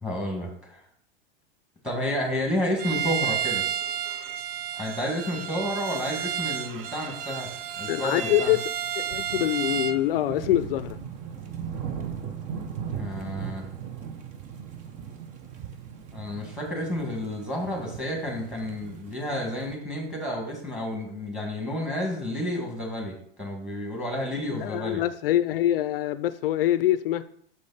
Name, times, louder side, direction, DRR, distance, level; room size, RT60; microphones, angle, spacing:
voice 1, 0.0-0.8 1.8-3.6 4.7-7.5 7.8-8.5 12.9-13.7 16.1-25.0, left 1 dB, 5° right, 1.9 m, -31 dB
Bowed string instrument, 2.8-10.0, right 9 dB, 70° right, 0.7 m, -31 dB
sound 1, 5.4-19.7, right 7 dB, 25° right, 0.6 m, -39 dB
voice 2, 7.9-8.6 9.0-11.0 24.5-27.2, left 13 dB, 70° left, 0.5 m, -25 dB
6.6 x 5.1 x 4.1 m
supercardioid pair, 145°, 30 cm